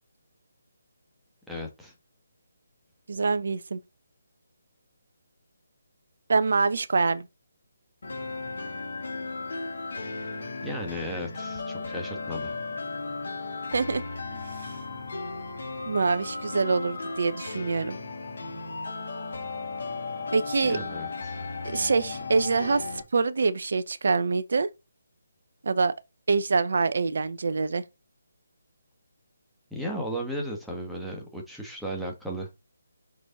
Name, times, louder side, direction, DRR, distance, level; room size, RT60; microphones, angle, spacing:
voice 1, 1.5-1.9 10.6-12.5 20.6-21.3 29.7-32.5, equal, ahead, 1.8 m, -35 dB
voice 2, 3.1-3.8 6.3-7.3 13.7-14.0 15.8-18.0 20.3-20.8 21.6-22.9 23.1-24.7 25.6-25.9 26.3-27.8, right 4 dB, 60° right, 0.9 m, -25 dB
sound 1, 8.0-23.0, left 3 dB, 60° left, 3.4 m, -35 dB
6.4 x 5.2 x 4.1 m
figure-of-eight pair, 145°, 0 cm